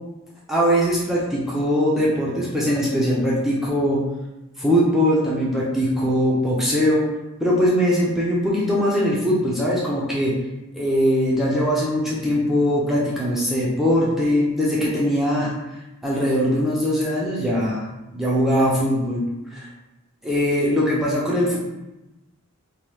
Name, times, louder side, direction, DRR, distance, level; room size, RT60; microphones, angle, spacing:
voice 1, 0.5-4.0 4.6-7.1 7.4-10.3 10.7-15.5 16.0-17.8 18.1-19.2 19.5-19.7 20.2-21.6, equal, ahead, -6 dB, 0.5 m, -21 dB
2.9 x 2.2 x 3.3 m, 0.99 s
head